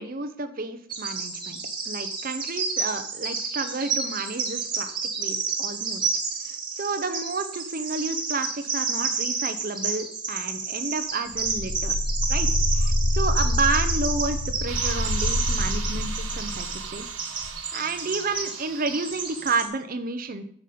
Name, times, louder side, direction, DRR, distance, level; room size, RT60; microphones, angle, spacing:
voice 1, 0.0-1.6 1.9-4.9 5.2-6.1 6.4-12.0 12.3-17.1 17.7-20.4, right 3 dB, 40° right, 9 dB, 0.7 m, -31 dB
Bird vocalization bird call bird song, 0.9-19.7, right 4 dB, 20° right, 1.6 m, -30 dB
sound 1, 11.3-16.9 17.4-17.5, left 1 dB, 75° left, 0.9 m, -26 dB
sound 2, 14.7-19.7, right 7 dB, 75° right, 1.0 m, -39 dB
9.2 x 7.3 x 5.1 m, 0.62 s
head